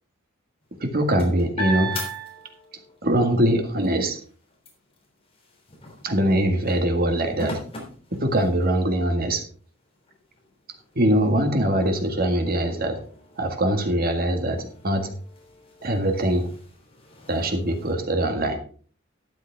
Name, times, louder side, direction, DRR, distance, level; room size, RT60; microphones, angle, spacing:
sound 1, 0.6-3.0 3.4-8.9 9.5-9.6 10.0-17.9, right 1 dB, 30° left, 3.3 m, -39 dB
voice 1, 0.8-2.0 3.0-4.2 6.0-7.6 8.1-9.4 11.0-13.0 13.4-15.1 15.8-16.5 17.3-18.6, right 1 dB, 50° right, 5 dB, 1.9 m, -22 dB
12.5 x 9.1 x 3.5 m, 0.43 s
head